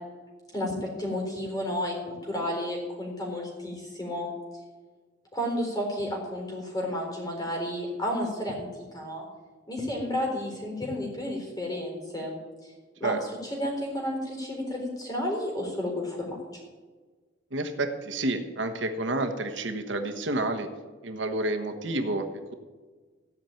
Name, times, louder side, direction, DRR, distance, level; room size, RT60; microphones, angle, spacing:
voice 1, 0.5-4.3 5.3-9.2 9.7-12.4 12.6-12.7 13.0-16.4, left 1 dB, 20° left, 0 dB, 4.1 m, -32 dB
voice 2, 17.5-20.7 21.0-22.3, right 2 dB, 70° right, 6 dB, 1.2 m, -29 dB
16.0 x 5.8 x 9.1 m, 1.4 s
head